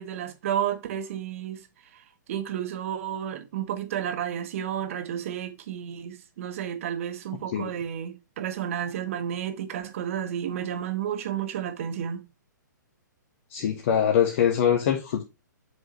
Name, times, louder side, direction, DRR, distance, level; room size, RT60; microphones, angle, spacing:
voice 1, 0.0-1.7 1.9-12.2, right 9 dB, 45° right, 1.3 m, -32 dB
voice 2, 13.5-15.2, left 9 dB, 40° left, 1.2 m, -23 dB
7.7 x 5.1 x 3.1 m
figure-of-eight pair, 125°, 10 cm